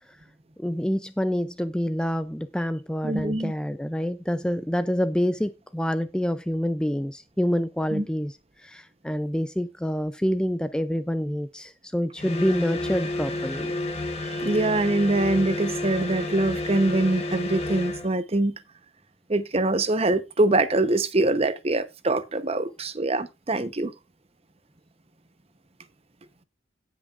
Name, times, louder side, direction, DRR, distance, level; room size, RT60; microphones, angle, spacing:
voice 1, 0.6-13.7, equal, 5° left, 0.4 m, -27 dB
voice 2, 3.0-3.5 7.9-8.1 14.4-18.5 19.3-23.9, right 2 dB, 30° right, 0.8 m, -24 dB
sound 1, 12.2-18.1, left 2 dB, 30° left, 2.0 m, -30 dB
18.0 x 6.1 x 2.4 m
head